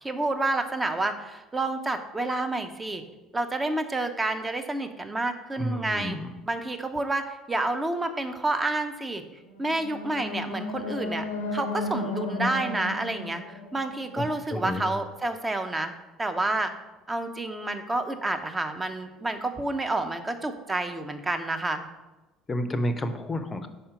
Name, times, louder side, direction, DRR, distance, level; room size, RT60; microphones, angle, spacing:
voice 1, 0.0-3.0 3.3-6.2 6.5-9.2 9.6-11.2 11.5-13.4 13.7-15.9 16.2-16.7 17.1-21.9, right 2 dB, 15° right, 6 dB, 0.7 m, -29 dB
voice 2, 5.6-6.3 14.2-15.0 22.5-23.7, left 1 dB, 25° left, 10 dB, 0.6 m, -30 dB
sound 1, 9.5-14.6, left 2 dB, 75° left, 0.6 m, -34 dB
5.5 x 4.3 x 5.0 m, 1.1 s
figure-of-eight pair, 60°, 0 cm